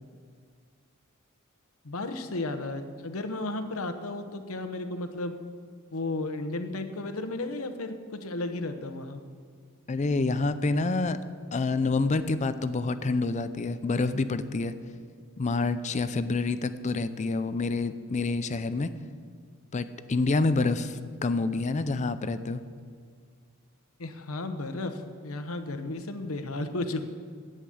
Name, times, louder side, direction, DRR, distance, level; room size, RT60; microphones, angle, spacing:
voice 1, 1.8-5.3 5.9-9.2 24.0-27.0, left 2 dB, 80° left, 8 dB, 1.1 m, -34 dB
voice 2, 9.9-11.2 11.5-14.7 15.4-18.9 19.7-22.6, left 3 dB, 35° left, 12 dB, 0.5 m, -27 dB
11.0 x 8.0 x 8.6 m, 2.1 s
head